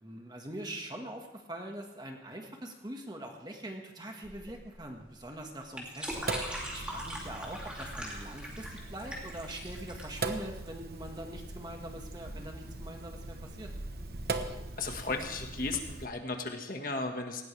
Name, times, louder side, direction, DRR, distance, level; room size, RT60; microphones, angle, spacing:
voice 1, 0.0-6.2 6.7-13.8, right 1 dB, 25° right, 2 dB, 1.7 m, -43 dB
sound 1, 4.2-11.3, equal, 5° right, 2.9 m, -42 dB
Sink (filling or washing), 6.1-16.0, right 3 dB, 60° right, 1.1 m, -40 dB
voice 2, 14.8-17.5, left 3 dB, 50° left, 3 dB, 1.7 m, -35 dB
19.0 x 17.0 x 3.4 m, 1.0 s
head